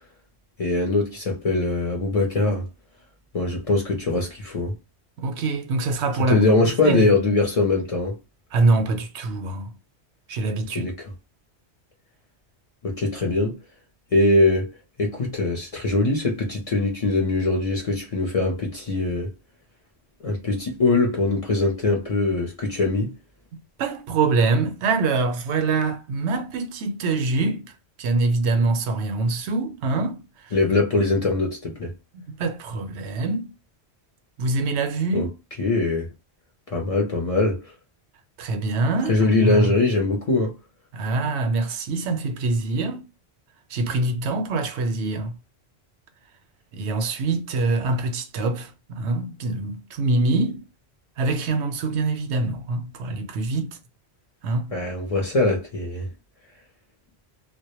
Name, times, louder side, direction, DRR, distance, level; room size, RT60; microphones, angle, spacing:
voice 1, 0.6-2.6 3.3-4.7 6.3-8.2 10.7-11.1 12.8-13.6 14.1-14.7 15.0-19.3 20.2-23.1 30.5-31.9 35.1-35.3 35.6-36.1 36.7-37.6 39.1-40.5 54.7-56.1, left 2 dB, 45° left, 0.5 m, -22 dB
voice 2, 5.2-7.1 8.5-9.7 10.3-10.9 23.5-27.6 28.0-30.2 30.4-30.5 32.1-33.5 34.4-35.3 38.4-39.7 40.9-43.0 43.7-45.3 46.7-50.7 51.2-53.8 54.4-54.7, right 3 dB, 85° right, 0.9 m, -24 dB
2.1 x 2.0 x 2.9 m
omnidirectional pair, 1.1 m